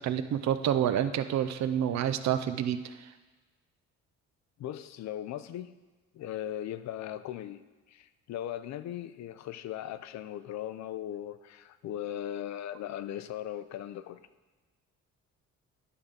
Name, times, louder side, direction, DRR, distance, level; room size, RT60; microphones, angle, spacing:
voice 1, 0.0-2.9, right 10 dB, 65° right, 11 dB, 0.6 m, -28 dB
voice 2, 4.6-5.7 6.1-14.2, left 11 dB, 65° left, 13 dB, 0.5 m, -38 dB
9.8 x 3.7 x 6.4 m, 1.3 s
cardioid pair, 90°, 30 cm